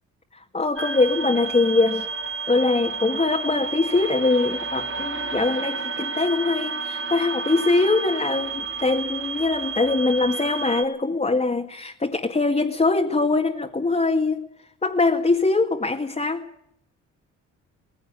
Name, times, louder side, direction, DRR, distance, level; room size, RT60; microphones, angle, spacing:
voice 1, 0.5-2.1 2.5-14.5 14.8-16.5, left 3 dB, 25° left, 0 dB, 2.1 m, -22 dB
sound 1, 0.8-10.8, right 4 dB, 40° right, 3.0 m, -31 dB
19.0 x 16.5 x 9.8 m, 0.75 s
cardioid pair, 90°, 30 cm